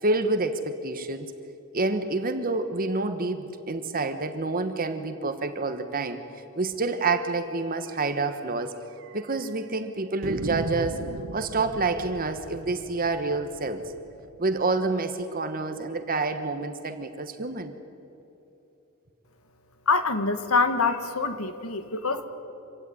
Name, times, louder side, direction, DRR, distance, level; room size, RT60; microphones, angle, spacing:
voice 1, 0.0-1.3 1.7-6.2 6.6-8.7 9.1-11.0 11.3-13.8 14.4-17.7, right 3 dB, 40° right, 8 dB, 1.2 m, -28 dB
sound 1, 7.4-7.6 7.9-8.0 8.3-8.4 9.0-9.5 10.2-15.0, right 3 dB, 60° right, 0.7 m, -38 dB
voice 2, 19.9-22.2, left 4 dB, 75° left, 10 dB, 1.6 m, -25 dB
25.5 x 16.5 x 9.8 m, 3.0 s
head